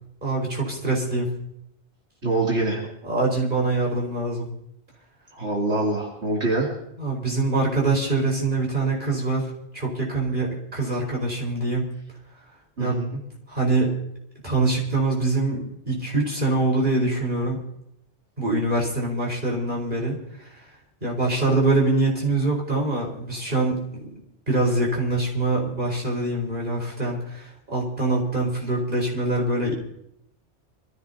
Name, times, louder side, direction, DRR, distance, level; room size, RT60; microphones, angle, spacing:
voice 1, 0.2-1.3 3.0-4.5 7.0-11.9 12.8-13.0 13.5-13.9 14.4-17.6 18.4-20.6 21.0-24.0 24.5-29.7, right 2 dB, 45° right, -2 dB, 4.8 m, -24 dB
voice 2, 2.2-2.8 5.4-6.7 12.8-13.1, right 2 dB, 80° right, -4 dB, 3.2 m, -24 dB
26.0 x 15.0 x 2.8 m, 0.74 s
omnidirectional pair, 1.2 m